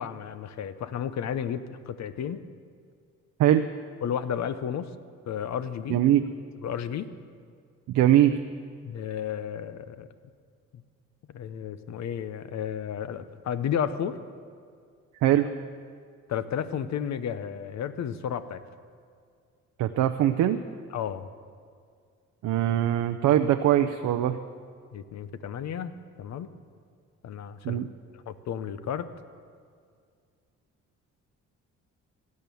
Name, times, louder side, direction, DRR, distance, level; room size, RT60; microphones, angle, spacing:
voice 1, 0.0-2.4 4.0-4.9 5.3-6.0 6.6-7.1 8.8-10.1 10.7-10.8 11.3-14.2 16.3-18.6 20.9-21.3 24.9-25.9 26.2-26.5 27.2-27.8 28.1-29.1, left 8 dB, 65° left, 12 dB, 0.9 m, -32 dB
voice 2, 5.9-6.2 7.9-8.3 15.2-15.5 19.8-20.6 22.4-24.4 27.6-27.9, right 12 dB, 75° right, 7 dB, 0.6 m, -22 dB
16.5 x 11.0 x 7.0 m, 2.1 s
cardioid pair, 90°, 30 cm